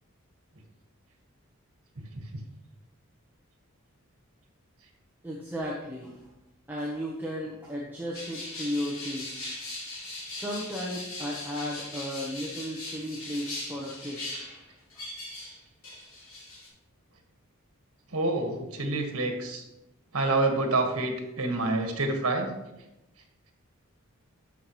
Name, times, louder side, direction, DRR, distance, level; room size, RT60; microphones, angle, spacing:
voice 1, 5.2-6.2 6.7-9.4 10.3-14.5, equal, 10° right, -4 dB, 1.0 m, -35 dB
sound 1, 8.1-15.6 15.8-16.7, left 2 dB, 75° left, 3.2 m, -39 dB
voice 2, 18.1-19.6 20.1-22.5, right 2 dB, 80° right, 4 dB, 1.6 m, -27 dB
13.5 x 5.8 x 3.1 m, 0.95 s
head